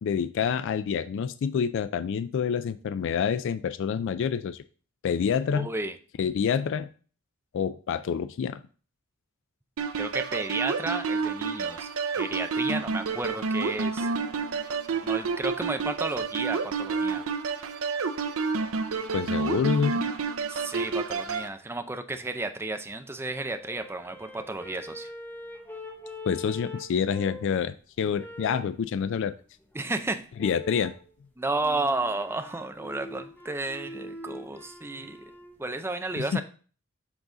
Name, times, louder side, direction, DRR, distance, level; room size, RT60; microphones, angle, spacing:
voice 1, 0.0-4.6 5.0-5.7 6.2-6.9 7.5-8.6 19.1-20.1 26.3-29.3 30.4-30.9 36.2-36.4, left 7 dB, 60° left, 13 dB, 0.3 m, -27 dB
voice 2, 5.5-5.9 10.0-11.9 12.2-14.1 15.0-17.2 20.5-25.1 29.7-30.3 31.4-35.2 35.6-36.4, right 2 dB, 10° right, 7 dB, 0.5 m, -32 dB
sound 1, 9.8-21.5, right 4 dB, 70° right, 0.6 m, -29 dB
sound 2, 23.3-27.6 28.1-28.8 30.4-31.0 31.6-35.6, left 1 dB, 10° left, 0.8 m, -43 dB
7.1 x 4.0 x 3.8 m, 0.40 s
head